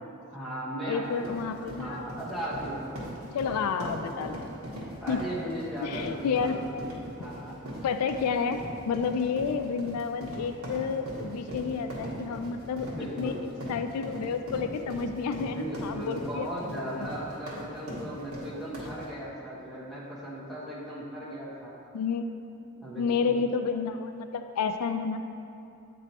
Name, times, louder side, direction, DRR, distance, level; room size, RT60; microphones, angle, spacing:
voice 1, 0.3-1.4 1.7-3.0 3.8-3.9 5.0-6.9 7.2-7.6 12.9-13.5 15.4-21.8 22.8-23.4, right 1 dB, ahead, -8 dB, 1.1 m, -37 dB
voice 2, 0.9-2.0 3.3-4.5 5.1-5.2 5.8-6.6 7.8-8.6 8.8-12.9 13.2-13.4 13.7-17.1 17.9-18.0 18.5-18.6 21.9-22.3 23.0-25.2, left 5 dB, 90° left, 7 dB, 0.3 m, -30 dB
sound 1, 1.0-19.1, equal, 85° right, 1.4 m, -40 dB
8.4 x 3.1 x 4.1 m, 2.7 s
head